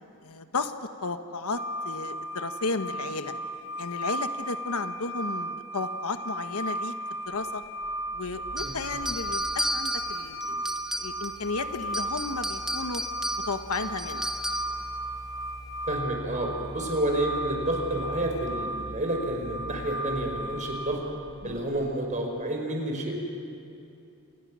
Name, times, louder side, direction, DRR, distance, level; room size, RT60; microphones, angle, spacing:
voice 1, 0.2-0.7 1.0-3.3 3.8-6.9 7.3-7.6 8.1-10.7 11.0-13.0 13.5-14.3 16.8-16.9 21.4-21.7, left 3 dB, 80° left, 8 dB, 1.3 m, -33 dB
sound 1, 1.6-21.0, right 1 dB, 45° left, 1.5 m, -35 dB
sound 2, 7.2-21.9, equal, 15° left, 7.0 m, -46 dB
sound 3, 8.6-11.5 11.8-14.8, equal, ahead, 1.4 m, -33 dB
voice 2, 15.9-21.0 21.4-23.2, right 1 dB, 35° right, 1 dB, 5.1 m, -29 dB
29.0 x 28.0 x 6.4 m, 2.7 s
head